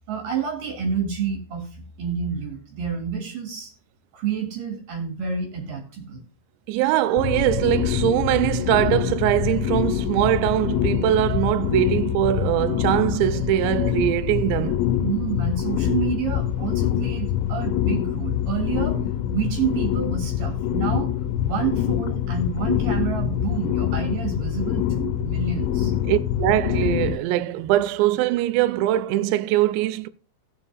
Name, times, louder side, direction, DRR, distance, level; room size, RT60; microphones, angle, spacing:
voice 1, 0.1-1.7 2.0-3.7 4.1-6.2 15.0-19.0 19.3-21.1 21.4-25.9, right 6 dB, 55° right, 3.0 m, -28 dB
voice 2, 6.7-14.8 26.0-30.1, right 13 dB, 85° right, 2.8 m, -22 dB
sound 1, 7.2-27.2, left 11 dB, 85° left, 2.9 m, -25 dB
18.0 x 7.5 x 2.3 m
omnidirectional pair, 5.2 m